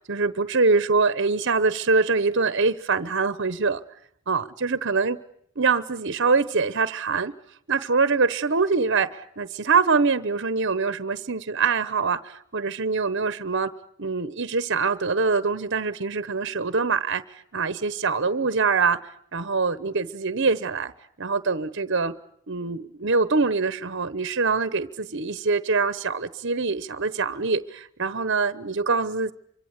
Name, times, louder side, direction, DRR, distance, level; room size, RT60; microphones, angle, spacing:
voice 1, 0.0-3.8 4.3-5.2 5.6-7.3 7.7-13.7 14.0-17.2 17.5-19.0 19.3-20.9 21.2-22.1 22.5-29.3, right 4 dB, 55° right, 15 dB, 1.0 m, -24 dB
26.5 x 24.5 x 8.3 m, 0.69 s
head